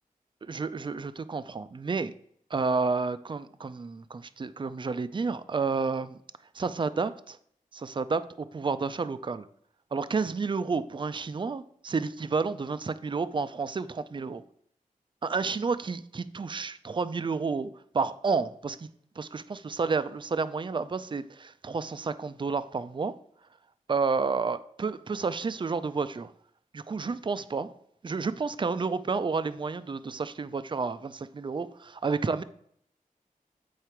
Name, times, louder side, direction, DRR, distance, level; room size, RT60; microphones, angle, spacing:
voice 1, 0.4-2.1 2.5-6.2 6.5-7.4 7.7-9.5 9.9-14.4 15.2-18.9 19.2-23.1 23.9-26.3 26.7-27.7 28.0-32.4, right 4 dB, 35° right, 13 dB, 0.4 m, -30 dB
8.3 x 4.7 x 4.5 m, 0.68 s
wide cardioid pair, 90°, 14 cm